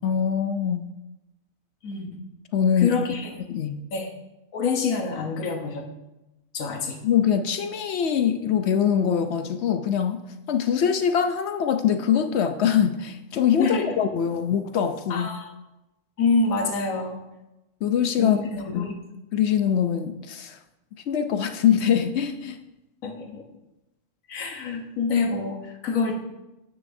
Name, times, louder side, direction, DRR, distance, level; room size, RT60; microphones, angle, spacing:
voice 1, 0.0-0.9 2.5-3.1 3.5-3.8 7.0-10.2 10.5-15.3 17.8-18.9 19.3-20.6 21.1-22.6, left 8 dB, 65° left, 8 dB, 0.7 m, -23 dB
voice 2, 1.8-2.2 2.8-3.3 3.9-4.1 4.5-5.9 6.5-7.0 13.6-14.0 15.1-15.5 16.2-17.2 18.2-18.9 23.0-23.4 24.3-26.2, left 4 dB, 85° left, 3 dB, 1.4 m, -26 dB
9.8 x 9.0 x 2.6 m, 0.97 s
omnidirectional pair, 1.4 m